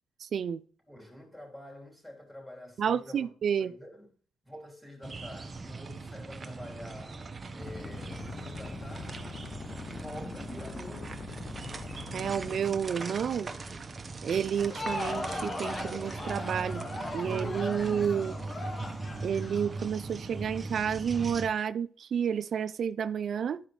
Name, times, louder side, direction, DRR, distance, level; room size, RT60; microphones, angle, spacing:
voice 1, 0.2-0.6 2.8-3.7 12.1-13.5 14.2-16.9 17.1-18.4 19.2-23.6, right 7 dB, 60° right, 0.3 m, -30 dB
voice 2, 0.9-3.3 3.6-4.1 4.4-7.2 7.5-9.4 9.8-11.4, equal, 10° left, 3.4 m, -47 dB
sound 1, 5.0-21.5, right 3 dB, 30° right, 0.8 m, -40 dB
sound 2, 7.6-12.6, left 6 dB, 45° left, 0.4 m, -43 dB
Crowd, 14.5-20.4, left 2 dB, 30° left, 1.1 m, -38 dB
12.0 x 4.9 x 3.2 m
cardioid pair, 90°, 0 cm